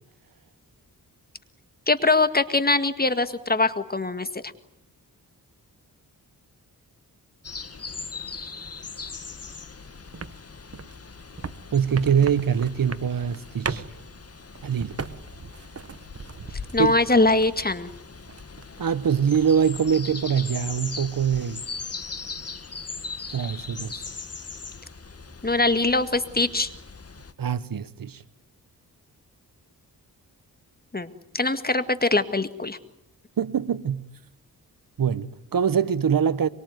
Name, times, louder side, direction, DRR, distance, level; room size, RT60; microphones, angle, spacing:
voice 1, 1.9-4.5 16.7-17.9 25.4-26.7 30.9-32.8, left 2 dB, 25° left, 1.9 m, -22 dB
sound 1, 7.4-27.3, left 4 dB, 40° left, 1.8 m, -40 dB
sound 2, 10.1-17.7 18.0-18.9 19.2-19.8, right 5 dB, 40° right, 1.4 m, -38 dB
voice 2, 11.7-13.8 14.6-15.0 16.8-16.9 18.8-21.6 23.3-24.0 27.4-28.2 33.4-34.1 35.0-36.5, right 7 dB, 60° right, 1.1 m, -23 dB
24.5 x 23.5 x 9.3 m
cardioid pair, 75°, 38 cm